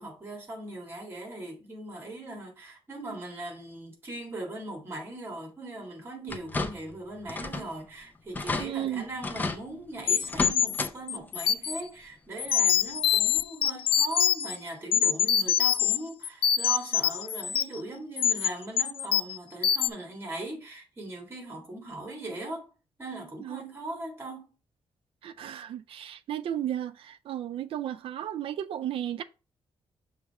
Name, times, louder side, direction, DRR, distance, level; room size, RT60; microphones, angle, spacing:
voice 1, 0.0-22.7 23.0-24.5, right 2 dB, 25° right, 1.9 m, -39 dB
sound 1, 6.3-7.0 7.3-7.7 8.0-8.1 8.3-8.7 9.2-9.6 10.2-10.9 11.3-11.4 12.8-12.9 13.4-13.5, left 3 dB, 20° left, 0.6 m, -32 dB
voice 2, 8.6-9.1 23.4-23.6 25.2-29.2, right 11 dB, 70° right, 0.4 m, -34 dB
sound 2, 10.1-11.8 12.4-14.6 14.9-16.0 16.2-17.8 18.2-18.5 18.8-19.4 19.6-19.9, left 9 dB, 65° left, 0.4 m, -25 dB
6.6 x 3.2 x 4.7 m
wide cardioid pair, 180°, 10 cm